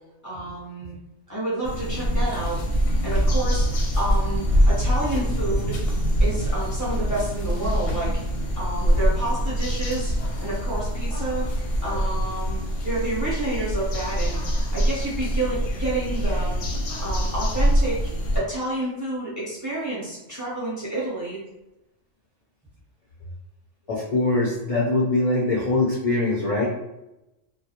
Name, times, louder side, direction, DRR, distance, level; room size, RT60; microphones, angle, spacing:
voice 1, 0.2-1.0 1.3-2.6 3.0-3.7 4.0-5.8 6.2-8.2 8.6-11.5 11.8-16.5 17.0-21.4, right 2 dB, 20° right, -7 dB, 0.6 m, -29 dB
sound 1, 1.6-18.4, equal, 85° left, 0.9 m, -24 dB
voice 2, 23.9-26.7, left 2 dB, 55° left, -6 dB, 0.4 m, -22 dB
2.3 x 2.0 x 2.8 m, 0.95 s
omnidirectional pair, 1.3 m